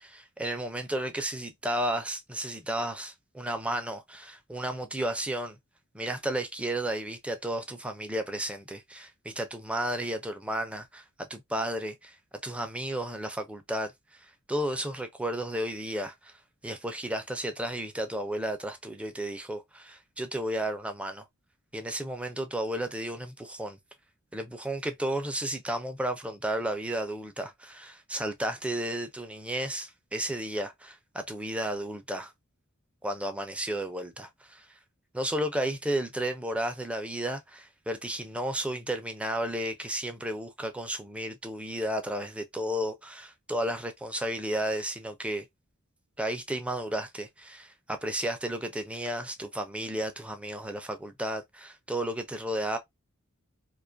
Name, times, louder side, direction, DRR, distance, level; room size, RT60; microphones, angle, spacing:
voice 1, 0.0-5.6 5.9-12.2 12.4-16.4 16.6-21.2 21.7-23.8 24.3-32.3 33.0-34.7 35.1-45.5 46.2-52.8, right 1 dB, 5° right, 0.4 m, -33 dB
2.4 x 2.3 x 2.5 m
head